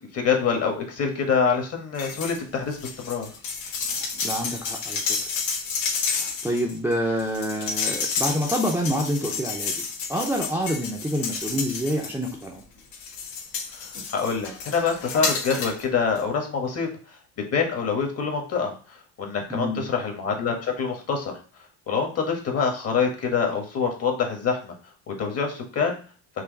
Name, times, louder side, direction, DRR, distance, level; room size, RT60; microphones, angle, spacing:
voice 1, 0.1-3.3 13.8-16.9 17.4-21.3 21.9-24.7 25.1-26.0, left 5 dB, 40° left, 3 dB, 1.5 m, -26 dB
sound 1, 1.9-2.4 2.7-12.5 12.9-15.8 16.2-16.3, left 5 dB, 70° left, 1.6 m, -30 dB
voice 2, 3.9-5.2 6.1-12.6 19.5-19.8, equal, 5° right, -1 dB, 0.7 m, -27 dB
4.8 x 2.8 x 4.0 m, 0.38 s
cardioid pair, 115°, 37 cm